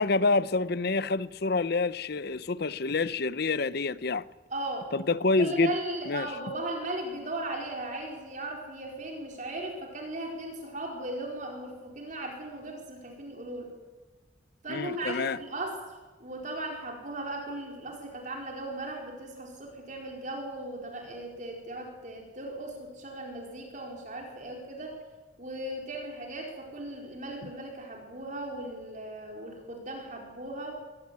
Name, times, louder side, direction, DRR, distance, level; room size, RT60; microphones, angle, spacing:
voice 1, 0.0-4.3 4.9-5.7 6.1-6.3 14.7-15.4 27.4-27.5, left 3 dB, 55° left, 0.7 m, -27 dB
voice 2, 4.5-4.9 5.4-13.7 14.6-25.0 25.4-30.7, right 1 dB, 40° right, 4.8 m, -37 dB
23.5 x 17.0 x 9.6 m
head